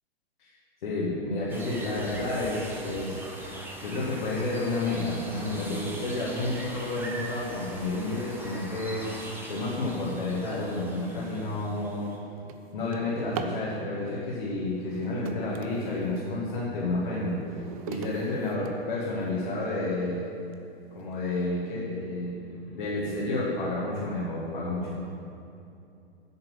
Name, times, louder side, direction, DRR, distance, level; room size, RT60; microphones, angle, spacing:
voice 1, 0.8-3.2 3.6-12.0 12.7-17.6 17.9-20.3 21.0-25.0, left 2 dB, 55° left, -7 dB, 2.1 m, -30 dB
sound 1, 1.5-12.2, right 1 dB, 5° right, 1.1 m, -41 dB
Drawer open or close, 11.8-13.7 14.7-16.3 16.9-19.3 19.9-20.0 20.5-20.6 21.0-21.4, right 8 dB, 35° right, 0.6 m, -42 dB
8.3 x 6.6 x 7.4 m, 2.7 s
figure-of-eight pair, 105°, 30 cm